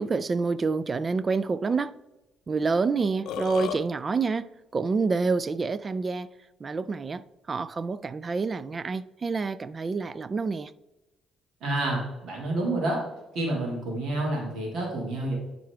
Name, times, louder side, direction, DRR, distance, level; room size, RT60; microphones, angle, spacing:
voice 1, 0.0-2.0 2.5-6.3 6.6-10.7, right 4 dB, 30° right, 0.3 m, -28 dB
Burping eructation, 3.0-3.8, left 7 dB, 75° left, 0.6 m, -32 dB
voice 2, 11.6-13.0 13.3-15.4, right 2 dB, 65° right, 2.1 m, -28 dB
11.5 x 3.8 x 3.4 m
cardioid pair, 110°, 0 cm